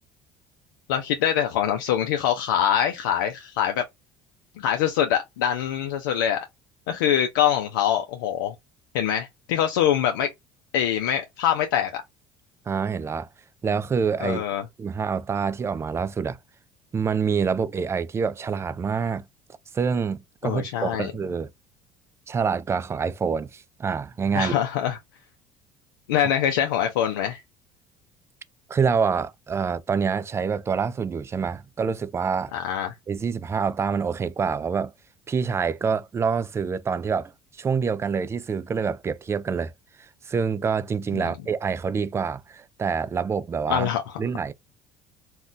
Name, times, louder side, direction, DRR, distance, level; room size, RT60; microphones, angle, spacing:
voice 1, 0.9-3.8 4.6-6.4 6.9-8.5 8.9-10.3 10.7-12.0 14.2-14.6 20.4-21.1 24.3-25.0 26.1-27.4 32.5-32.9 41.1-41.3 43.7-44.0, left 10 dB, 90° left, 0.4 m, -24 dB
voice 2, 12.7-13.3 13.6-14.4 14.8-16.4 16.9-19.2 19.7-21.5 22.3-24.6 28.7-32.5 33.1-34.9 35.3-39.7 40.0-43.9 44.2-44.5, right 6 dB, 25° right, 0.3 m, -26 dB
2.5 x 2.2 x 3.7 m
supercardioid pair, 75°, 11 cm